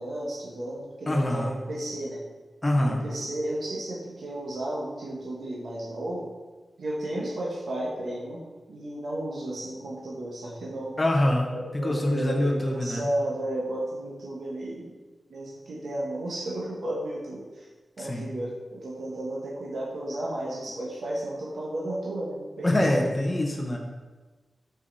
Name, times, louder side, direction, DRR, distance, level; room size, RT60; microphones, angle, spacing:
voice 1, 0.0-2.2 2.8-6.3 6.8-8.4 8.7-11.0 11.5-14.9 15.3-17.7 18.0-23.1, right 1 dB, 70° right, -4 dB, 1.3 m, -33 dB
voice 2, 1.1-1.6 2.6-3.0 11.0-13.1 18.0-18.3 22.6-23.8, left 1 dB, 20° left, 1 dB, 0.9 m, -25 dB
6.1 x 5.4 x 4.1 m, 1.3 s
wide cardioid pair, 140°, 0 cm